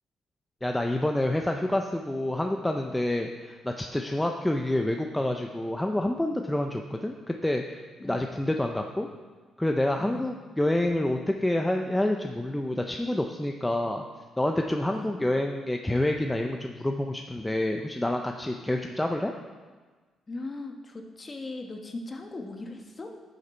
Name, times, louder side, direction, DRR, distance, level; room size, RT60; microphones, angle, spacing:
voice 1, 0.6-9.1 9.6-14.0 14.4-19.3, left 1 dB, 10° left, 3 dB, 0.6 m, -28 dB
voice 2, 10.0-10.3 14.9-15.2 20.3-23.1, left 2 dB, 30° left, 3 dB, 1.3 m, -39 dB
11.0 x 6.7 x 4.5 m, 1.4 s
cardioid pair, 90°, 0 cm